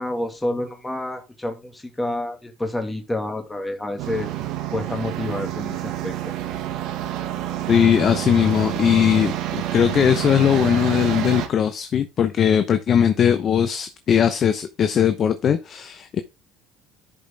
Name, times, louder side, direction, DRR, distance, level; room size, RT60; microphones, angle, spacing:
voice 1, 0.0-4.3 4.7-6.3, left 1 dB, 10° left, 2.3 m, -29 dB
sound 1, 4.0-11.5, right 12 dB, 70° right, 1.7 m, -28 dB
voice 2, 7.7-9.3 9.7-16.2, left 8 dB, 45° left, 0.8 m, -19 dB
11.0 x 5.2 x 3.5 m
supercardioid pair, 90°, 0 cm